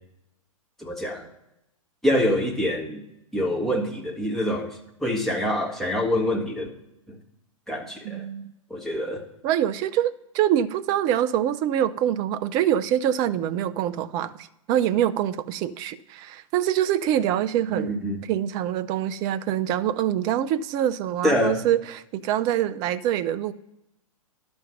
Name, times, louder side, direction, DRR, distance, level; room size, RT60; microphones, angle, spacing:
voice 1, 0.8-1.2 2.0-3.0 3.3-4.7 5.0-6.7 7.1-7.2 7.7-8.2 8.7-9.3 17.7-18.2 21.2-21.6, left 1 dB, ahead, -1 dB, 1.4 m, -25 dB
voice 2, 8.0-8.5 9.4-14.3 14.7-18.0 18.3-23.5, right 11 dB, 25° right, 14 dB, 0.4 m, -25 dB
11.5 x 5.2 x 5.9 m, 0.86 s
figure-of-eight pair, 110°, 18 cm